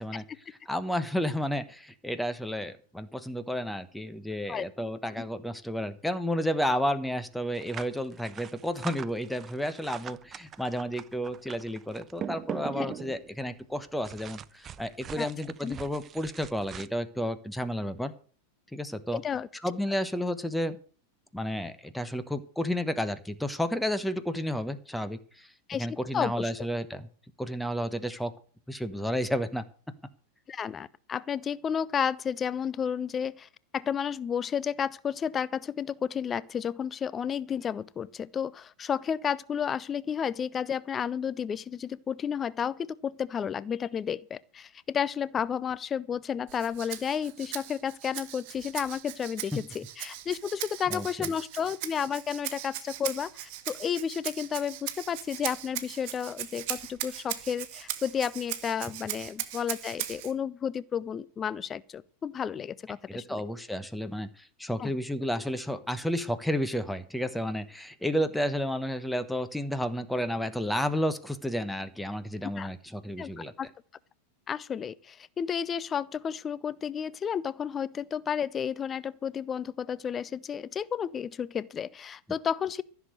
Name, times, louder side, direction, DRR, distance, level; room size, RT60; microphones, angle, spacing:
voice 1, 0.0-18.1 18.7-19.2 19.6-20.8 21.3-25.5 25.8-27.1 27.4-28.3 28.7-29.7 49.5-49.6 50.9-51.1 63.1-73.5, equal, 5° left, 1.1 m, -31 dB
sound 1, 7.5-13.4 14.0-16.9, right 9 dB, 25° right, 0.6 m, -41 dB
voice 2, 19.1-19.5 25.7-25.9 26.1-26.5 30.5-63.4 64.8-64.9 72.6-72.7 73.2-73.7 74.5-82.8, left 7 dB, 25° left, 0.6 m, -32 dB
Rattle (instrument), 46.5-60.3, right 13 dB, 45° right, 1.6 m, -39 dB
15.0 x 7.1 x 7.9 m
figure-of-eight pair, 90°, 0 cm